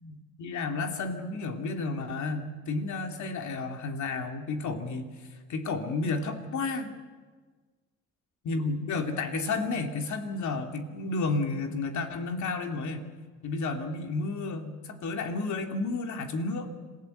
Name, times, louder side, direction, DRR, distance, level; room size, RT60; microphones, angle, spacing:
voice 1, 0.0-5.1 5.5-6.9 8.4-13.1 13.4-16.7, left 3 dB, 70° left, 4 dB, 2.7 m, -32 dB
26.5 x 16.0 x 8.0 m, 1.4 s
cardioid pair, 90°, 30 cm